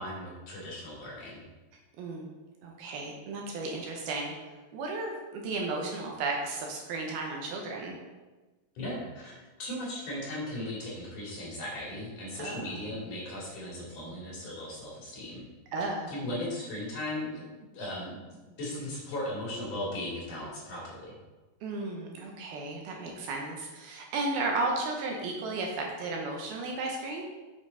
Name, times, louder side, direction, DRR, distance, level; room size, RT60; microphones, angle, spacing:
voice 1, 0.0-1.4 8.8-15.4 16.1-17.4 17.7-18.2 18.6-21.2, left 1 dB, 50° left, -5 dB, 3.7 m, -37 dB
voice 2, 2.6-4.3 4.7-8.0 12.4-12.8 15.7-16.1 21.6-27.2, right 3 dB, 75° right, 0 dB, 2.6 m, -34 dB
8.2 x 7.6 x 4.0 m, 1.2 s
omnidirectional pair, 4.8 m